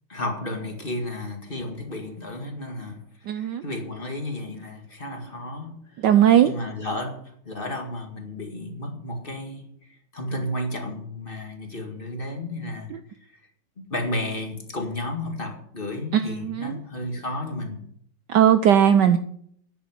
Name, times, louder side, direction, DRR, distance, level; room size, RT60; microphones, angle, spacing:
voice 1, 0.1-3.0 3.3-5.8 6.4-9.7 10.1-12.9 13.8-17.8, left 1 dB, 25° left, 1.8 m, -32 dB
voice 2, 3.3-3.6 6.0-6.5 12.9-13.0 16.1-16.8 18.3-19.2, right 9 dB, 70° right, 1.1 m, -18 dB
10.5 x 8.2 x 7.7 m
omnidirectional pair, 2.4 m